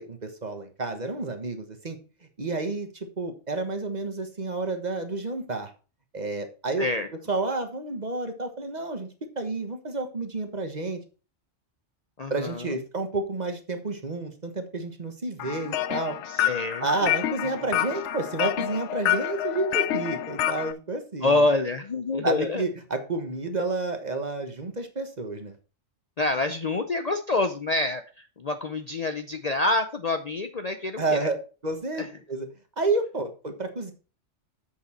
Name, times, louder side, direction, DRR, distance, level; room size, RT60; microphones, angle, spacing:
voice 1, 0.0-2.0 2.4-2.9 3.2-5.7 6.1-6.9 7.3-9.1 9.3-11.0 12.3-16.2 16.8-21.4 22.2-25.5 31.0-31.3 31.6-32.5 32.8-33.9, right 3 dB, 35° right, 6 dB, 1.4 m, -30 dB
voice 2, 12.2-12.8 16.3-17.1 21.2-22.7 26.2-31.3 32.0-32.1, left 2 dB, 40° left, 7 dB, 0.6 m, -27 dB
sound 1, 15.4-20.7, left 12 dB, 75° left, 0.9 m, -28 dB
7.9 x 6.8 x 4.3 m, 0.34 s
omnidirectional pair, 1.2 m